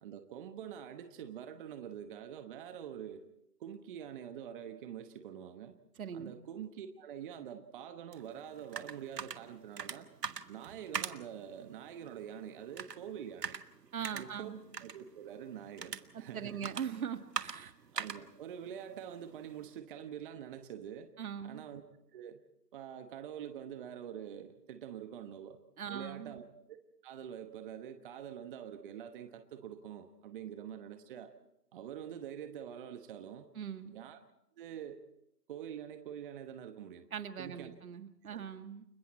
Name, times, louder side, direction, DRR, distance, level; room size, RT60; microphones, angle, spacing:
voice 1, 0.0-3.2 3.6-5.7 6.1-10.1 10.5-13.6 14.1-14.5 14.8-16.7 17.9-21.1 21.4-21.8 22.1-22.4 22.7-25.6 25.9-26.8 27.0-31.3 31.7-33.5 33.9-34.2 34.6-35.0 35.5-37.1 37.4-37.7 38.3-38.4, right 9 dB, 30° right, 8 dB, 1.2 m, -45 dB
voice 2, 6.0-6.3 13.9-14.6 16.1-17.7 21.2-21.6 25.8-26.4 33.6-33.9 37.1-38.9, right 8 dB, 60° right, 9 dB, 1.8 m, -41 dB
sound 1, 8.1-19.8, right 6 dB, 75° right, 1.4 m, -44 dB
30.0 x 22.0 x 4.3 m, 0.80 s
figure-of-eight pair, 135°, 49 cm